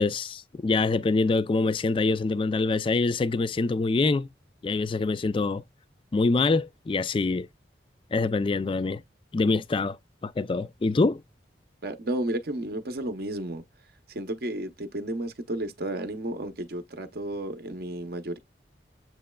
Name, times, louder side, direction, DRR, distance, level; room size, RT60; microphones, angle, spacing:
voice 1, 0.0-4.3 4.6-5.6 6.1-7.5 8.1-9.0 9.3-10.0 10.2-11.2, left 3 dB, 30° left, 0.3 m, -25 dB
voice 2, 11.8-13.6 14.1-18.4, right 1 dB, 55° right, 0.7 m, -32 dB
7.5 x 3.0 x 2.2 m
head